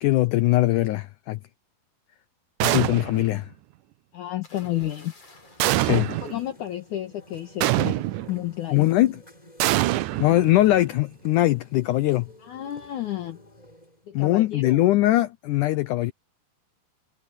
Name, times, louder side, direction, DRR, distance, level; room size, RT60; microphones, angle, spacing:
voice 1, 0.0-1.4 2.6-3.5 5.8-6.1 8.7-9.2 10.2-12.3 14.1-16.1, left 16 dB, 85° left, 1.8 m, -21 dB
sound 1, 2.6-3.4 5.6-6.4 7.6-8.4 9.6-10.8, right 16 dB, 85° right, 1.8 m, -24 dB
voice 2, 4.1-5.1 6.1-8.9 12.4-13.4 14.1-14.8, left 13 dB, 60° left, 2.5 m, -32 dB
sound 2, 4.4-7.2 8.4-8.7, left 2 dB, 40° left, 8.7 m, -52 dB
sound 3, 5.2-14.1, equal, 10° left, 3.6 m, -52 dB
omnidirectional pair, 4.4 m